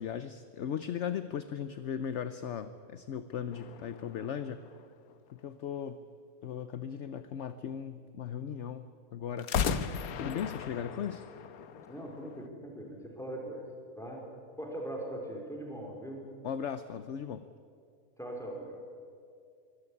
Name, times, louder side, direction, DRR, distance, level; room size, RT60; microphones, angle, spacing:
voice 1, 0.0-4.6 5.3-6.0 6.4-11.2 16.4-17.4, left 8 dB, 60° left, 12 dB, 1.0 m, -38 dB
sound 1, 3.5-5.3 9.4-12.5, left 7 dB, 85° left, 1.4 m, -36 dB
voice 2, 11.9-13.6 14.0-14.2 14.6-16.3 18.2-18.8, right 1 dB, ahead, 0 dB, 4.2 m, -40 dB
24.5 x 13.5 x 9.8 m, 2.4 s
omnidirectional pair, 1.5 m